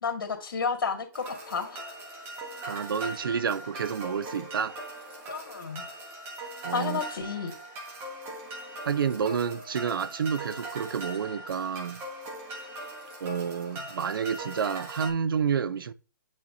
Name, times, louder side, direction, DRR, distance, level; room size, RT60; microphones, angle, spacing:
voice 1, 0.0-1.8 5.3-5.8 6.7-7.5, left 5 dB, 75° left, 1.8 m, -31 dB
sound 1, 1.1-15.1, right 1 dB, 20° right, 1.4 m, -40 dB
voice 2, 2.6-4.8 6.6-7.0 8.9-12.0 13.2-15.9, right 7 dB, 80° right, 0.5 m, -29 dB
8.4 x 4.5 x 2.6 m
hypercardioid pair, 155°, 12 cm